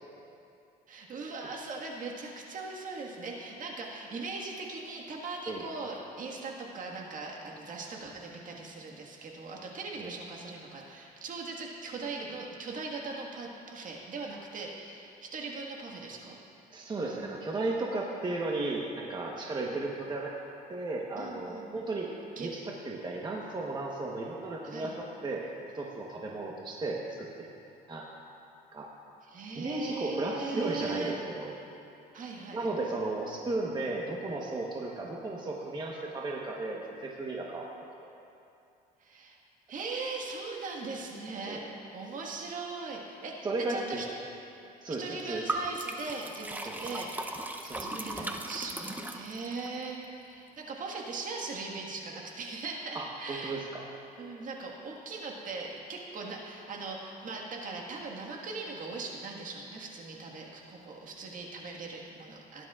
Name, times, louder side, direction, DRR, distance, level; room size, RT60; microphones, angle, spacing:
voice 1, 0.9-16.4 19.7-19.8 21.2-21.7 22.4-22.5 24.6-25.0 29.3-31.2 32.1-32.7 39.0-39.4 39.7-44.1 44.9-47.4 47.7-53.6 54.2-62.7, right 3 dB, 50° right, -1 dB, 1.7 m, -40 dB
voice 2, 16.7-20.3 20.7-22.1 22.4-22.6 22.8-25.4 25.7-27.6 27.9-28.1 28.7-28.9 29.5-31.6 32.5-37.7 38.0-38.1 41.5-41.6 43.4-44.0 44.8-45.4 46.7-46.8 47.6-47.8 48.2-48.3 52.9-53.9, right 2 dB, 25° right, -2 dB, 1.1 m, -34 dB
Liquid, 45.5-49.7, right 1 dB, 10° right, 0.7 m, -37 dB
17.5 x 10.5 x 2.4 m, 2.6 s
cardioid pair, 110°, 17 cm